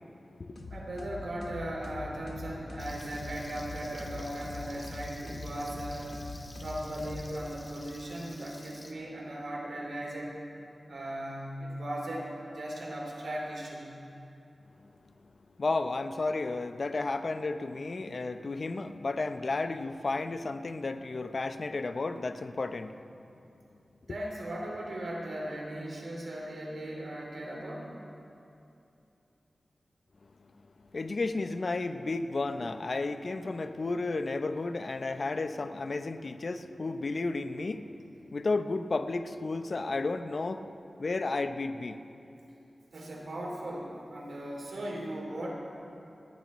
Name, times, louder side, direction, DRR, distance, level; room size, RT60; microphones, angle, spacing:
sound 1, 0.6-7.7, left 2 dB, 90° left, 1.3 m, -43 dB
voice 1, 0.7-6.2 6.6-10.4 10.9-13.9 24.1-27.9 42.9-45.5, right 1 dB, 90° right, -3 dB, 2.7 m, -38 dB
Frying (food), 2.8-8.9, left 1 dB, 30° left, 1.6 m, -52 dB
voice 2, 15.6-23.0 30.9-37.9 38.3-40.6 41.0-42.0, left 3 dB, 65° left, 9 dB, 0.7 m, -32 dB
29.0 x 10.0 x 3.1 m, 2.8 s
cardioid pair, 50°, 0 cm